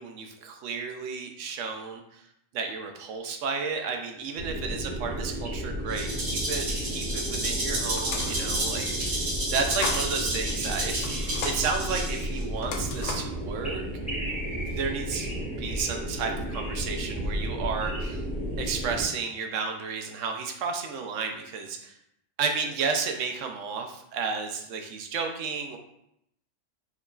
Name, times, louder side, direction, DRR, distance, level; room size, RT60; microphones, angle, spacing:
voice 1, 0.0-2.2 2.5-13.9 14.6-18.2 18.6-21.9 22.4-25.8, right 5 dB, 90° right, 4 dB, 0.9 m, -32 dB
sound 1, 4.4-19.1, right 1 dB, 5° left, 1.3 m, -33 dB
Rattle (instrument), 5.9-12.4, right 1 dB, 50° right, 1.0 m, -31 dB
sound 2, 8.0-8.5 9.5-10.1 11.0-11.6 12.6-13.4, left 4 dB, 75° left, 0.9 m, -35 dB
4.6 x 3.0 x 2.3 m, 0.77 s
omnidirectional pair, 1.3 m